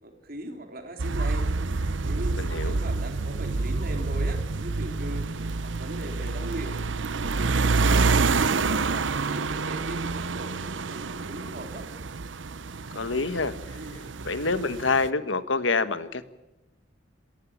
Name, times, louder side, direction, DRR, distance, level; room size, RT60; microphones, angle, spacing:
voice 1, 0.0-1.5 2.0-5.3 5.6-6.8 7.2-11.9 13.8-14.0, right 1 dB, 50° right, 5 dB, 3.5 m, -39 dB
sound 1, 1.0-15.1, right 4 dB, 80° right, 0.8 m, -28 dB
voice 2, 2.4-2.8 12.9-13.5 14.3-16.2, left 3 dB, 85° left, 12 dB, 1.5 m, -26 dB
27.5 x 14.5 x 8.9 m, 1.0 s
head